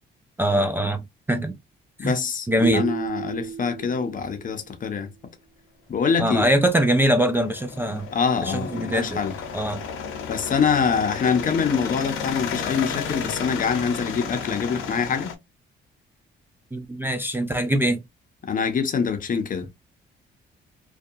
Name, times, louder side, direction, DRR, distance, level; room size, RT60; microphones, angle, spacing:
voice 1, 0.4-1.0 1.3-1.5 2.0-2.2 2.5-2.8 6.2-8.1 8.4-9.2 9.5-9.8 16.7-18.0, right 1 dB, 10° right, 0.3 m, -22 dB
voice 2, 2.0-5.1 5.9-6.5 8.1-9.3 10.3-15.3 18.4-19.7, left 6 dB, 45° left, 0.7 m, -25 dB
sound 1, 2.6-4.8, right 7 dB, 80° right, 0.8 m, -33 dB
sound 2, 6.6-15.3, left 7 dB, 90° left, 0.7 m, -33 dB
2.6 x 2.3 x 2.4 m
cardioid pair, 90°, 20 cm